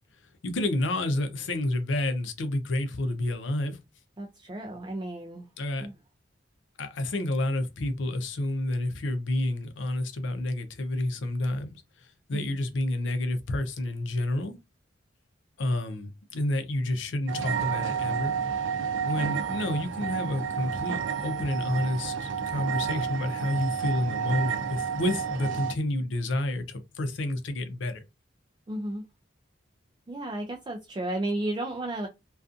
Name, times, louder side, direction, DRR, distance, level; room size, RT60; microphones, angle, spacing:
voice 1, 0.4-3.8 5.6-5.9 6.8-11.7 12.0-14.6 15.6-18.4 19.0-28.0, left 1 dB, 85° left, 0.6 m, -29 dB
voice 2, 4.2-5.5 5.8-5.9 12.3-12.5 28.7-29.1 30.1-32.1, right 1 dB, 25° right, 0.3 m, -33 dB
sound 1, 17.3-25.7, right 7 dB, 85° right, 0.4 m, -30 dB
2.5 x 2.3 x 2.4 m
head